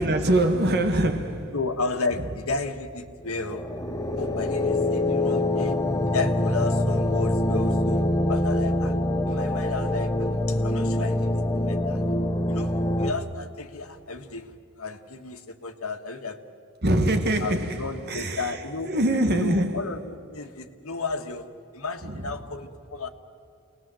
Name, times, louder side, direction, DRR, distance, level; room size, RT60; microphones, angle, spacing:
voice 1, 0.0-1.6 2.2-2.3 16.8-19.9 22.0-22.3, right 1 dB, 50° right, 1.5 m, -24 dB
voice 2, 1.5-3.7 4.1-9.0 9.2-12.0 12.5-16.5 17.4-19.1 19.4-23.1, left 3 dB, 75° left, 1.6 m, -33 dB
sound 1, 3.3-13.1, left 1 dB, 15° left, 1.0 m, -25 dB
28.5 x 20.0 x 7.7 m
head